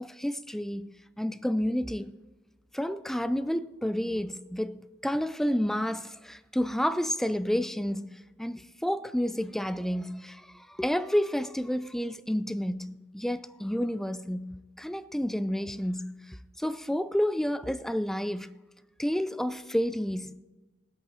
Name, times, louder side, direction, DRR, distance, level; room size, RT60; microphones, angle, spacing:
voice 1, 0.0-2.1 2.7-18.5 19.0-20.4, equal, ahead, 0.3 m, -30 dB
19.0 x 8.2 x 4.4 m
head